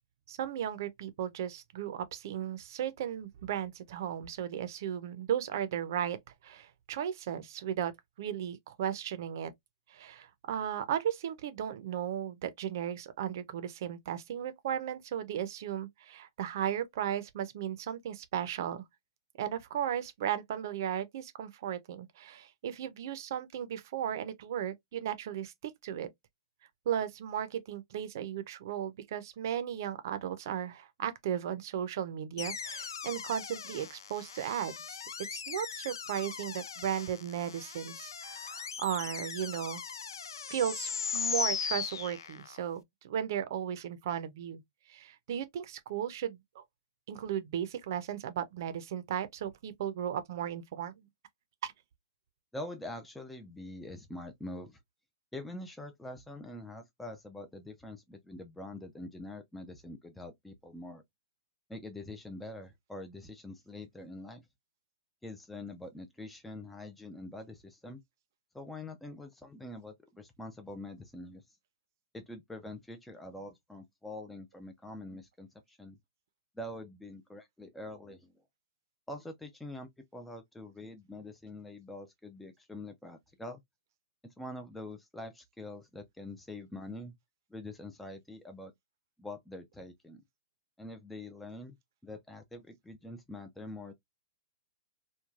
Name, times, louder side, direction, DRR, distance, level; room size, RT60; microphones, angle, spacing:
voice 1, 0.3-6.2 6.4-9.5 9.9-18.8 19.4-26.1 26.9-35.0 35.3-39.8 40.5-44.6 44.9-46.6 47.1-51.1 51.6-51.7, right 9 dB, 55° right, 0.6 m, -35 dB
sound 1, 32.4-42.7, left 7 dB, 75° left, 0.3 m, -38 dB
voice 2, 52.5-54.8 55.3-61.0 61.7-64.4 65.2-68.0 68.5-71.6 72.1-76.0 76.6-78.3 79.1-83.6 84.2-87.1 87.5-88.7 89.2-90.2 90.8-91.8 92.0-93.9, left 1 dB, 5° left, 0.4 m, -45 dB
3.1 x 2.2 x 2.4 m
hypercardioid pair, 120°, 2 cm